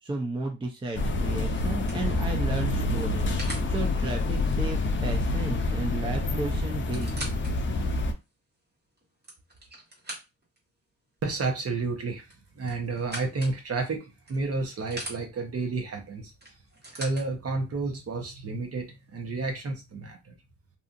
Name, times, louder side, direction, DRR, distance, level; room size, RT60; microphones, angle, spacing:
voice 1, 0.0-7.2, right 2 dB, 15° right, 1 dB, 0.5 m, -34 dB
sound 1, 0.8-1.1 1.7-3.7 5.7-5.9 6.1-6.2 6.7-7.5 8.1-8.2 9.0-10.6 12.2-13.6 14.3-15.2 16.4-17.3 18.2-18.3, right 1 dB, 30° right, 1.2 m, -41 dB
sound 2, 0.9-8.1, left 2 dB, 35° left, 0.5 m, -27 dB
voice 2, 11.2-12.3 12.6-16.3 16.9-20.3, right 3 dB, 45° right, 3 dB, 0.9 m, -31 dB
2.8 x 2.4 x 2.5 m, 0.26 s
cardioid pair, 100°, 33 cm